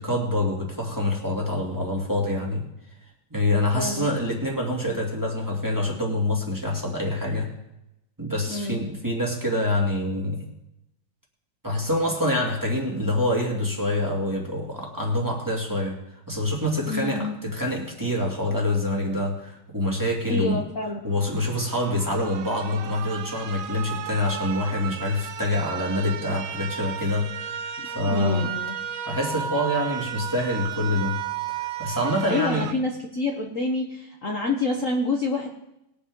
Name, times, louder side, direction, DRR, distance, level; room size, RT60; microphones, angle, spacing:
voice 1, 0.0-2.7 3.3-7.5 8.2-10.4 11.6-16.0 16.3-20.6 21.0-28.4 29.1-31.2 31.5-32.7, left 1 dB, 10° right, -2 dB, 2.2 m, -26 dB
voice 2, 3.7-4.1 8.5-8.9 16.9-17.4 20.3-21.0 27.8-28.7 32.3-35.5, left 2 dB, 45° left, 0 dB, 1.3 m, -27 dB
sound 1, 21.2-32.7, right 9 dB, 85° right, 0.7 m, -34 dB
20.5 x 8.3 x 3.7 m, 0.86 s
omnidirectional pair, 2.2 m